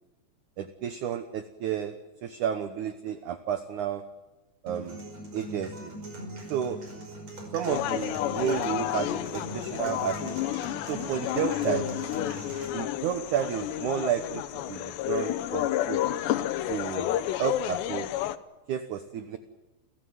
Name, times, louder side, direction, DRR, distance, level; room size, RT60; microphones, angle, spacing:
voice 1, 0.6-2.0 2.2-4.0 4.6-5.0 5.3-5.9 6.5-6.8 7.5-10.4 10.9-11.9 12.7-16.0 16.7-18.1 18.7-19.4, right 9 dB, 70° right, 10 dB, 1.9 m, -31 dB
sound 1, 4.7-12.7, right 1 dB, 40° right, 6.6 m, -40 dB
sound 2, 7.7-18.4, left 13 dB, 85° left, 3.1 m, -31 dB
29.5 x 15.0 x 9.4 m, 1.1 s
omnidirectional pair, 4.9 m